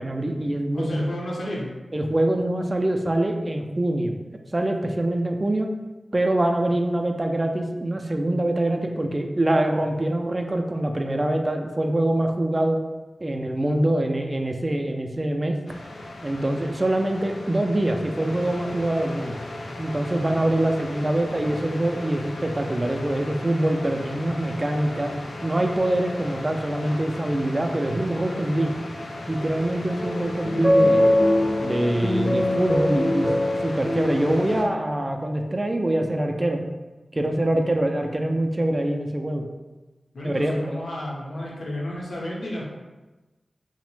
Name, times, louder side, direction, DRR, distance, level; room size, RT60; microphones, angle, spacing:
voice 1, 0.0-1.0 1.9-4.2 4.5-5.7 6.1-12.8 13.2-15.6 16.2-19.4 19.8-25.1 25.4-28.7 29.3-31.1 31.6-33.3 33.6-36.6 37.1-39.5 40.2-40.8, right 1 dB, 35° right, 3 dB, 0.3 m, -24 dB
voice 2, 0.7-1.7 32.3-32.5 40.1-42.7, left 1 dB, 70° left, -4 dB, 0.7 m, -32 dB
sound 1, 15.7-34.6, left 1 dB, 85° left, 0.3 m, -37 dB
sound 2, 30.0-34.9, left 1 dB, 25° left, 0.5 m, -22 dB
2.9 x 2.0 x 3.1 m, 1.1 s
cardioid pair, 55°, 0 cm